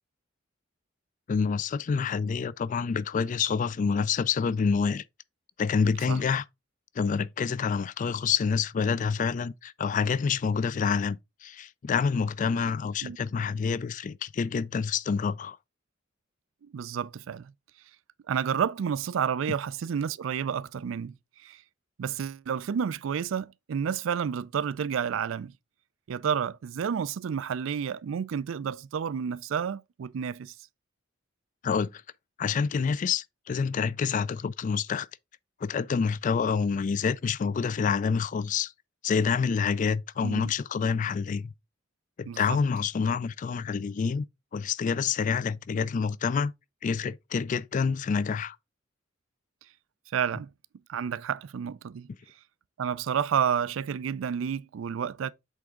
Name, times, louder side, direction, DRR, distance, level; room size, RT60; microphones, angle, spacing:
voice 1, 1.3-5.0 5.6-6.4 7.0-11.2 11.4-15.6 31.6-32.0 32.4-35.1 35.6-38.7 39.0-41.5 42.2-44.2 44.5-46.5 46.8-48.6, left 6 dB, 40° left, 0.3 m, -27 dB
voice 2, 16.6-17.5 18.3-21.2 21.4-21.6 22.0-25.5 26.1-30.5 40.2-40.5 42.3-42.6 50.1-50.5 50.9-52.1 52.8-55.3, right 7 dB, 85° right, 0.4 m, -30 dB
7.9 x 3.5 x 3.6 m
head